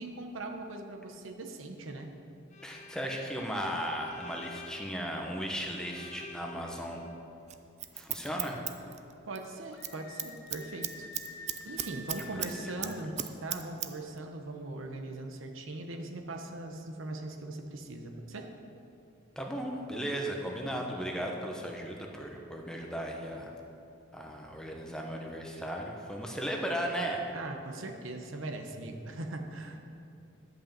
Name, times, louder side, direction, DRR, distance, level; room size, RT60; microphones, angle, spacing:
voice 1, 0.0-2.1 9.3-13.1 13.4-18.5 27.3-29.8, right 2 dB, 75° right, 4 dB, 0.9 m, -40 dB
Bowed string instrument, 2.5-7.2, left 4 dB, 35° left, 0.7 m, -50 dB
voice 2, 2.6-7.0 7.9-8.6 12.3-12.5 12.8-12.9 19.4-23.5 24.1-27.3, equal, 5° left, 0 dB, 0.9 m, -36 dB
Scissors, 7.5-9.5 9.7-9.9 10.2-12.5 12.8-13.9 14.2-14.3, right 11 dB, 35° right, 0.4 m, -35 dB
Screaming, 9.7-13.1, left 2 dB, 75° left, 1.0 m, -48 dB
11.5 x 5.4 x 7.4 m, 2.7 s
head